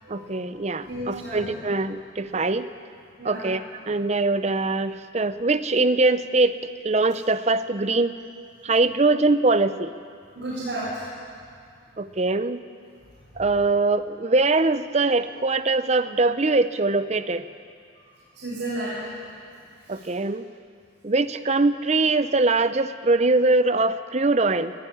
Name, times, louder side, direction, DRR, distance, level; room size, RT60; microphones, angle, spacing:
voice 1, 0.1-2.7 3.2-6.6 6.8-8.2 8.6-9.9 12.0-12.6 13.4-17.4 19.9-20.4 21.0-24.7, right 3 dB, 35° right, 13 dB, 0.6 m, -22 dB
voice 2, 0.9-1.5 3.2-3.5 10.3-11.0 18.3-19.1 19.9-20.0, right 1 dB, 60° right, -10 dB, 7.2 m, -32 dB
19.0 x 14.5 x 10.0 m, 2.3 s
head